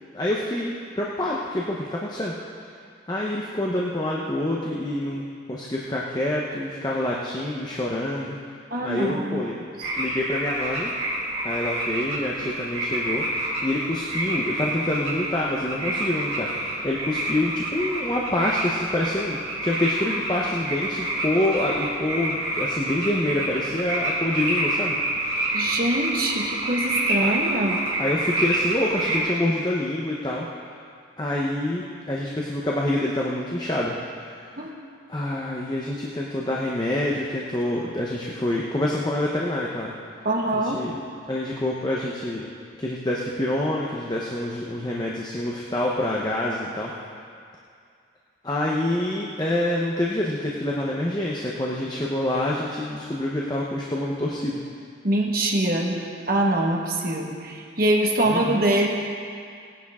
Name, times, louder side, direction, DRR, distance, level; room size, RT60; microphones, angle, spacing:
voice 1, 0.1-2.3 3.1-5.2 5.5-8.4 8.8-9.6 9.9-10.9 11.4-25.0 27.2-27.3 28.0-30.5 31.2-34.0 34.3-34.5 35.1-39.9 40.5-41.0 41.3-42.5 42.8-46.9 48.4-54.6 58.2-58.6, left 1 dB, 20° left, -4 dB, 0.9 m, -27 dB
voice 2, 8.7-9.6 25.5-27.8 34.6-34.7 40.2-40.8 55.0-56.0 56.3-58.9, right 1 dB, 50° right, 0 dB, 1.5 m, -24 dB
sound 1, 9.8-29.2, right 1 dB, 30° right, 3.4 m, -28 dB
18.0 x 10.0 x 3.7 m, 2.3 s
head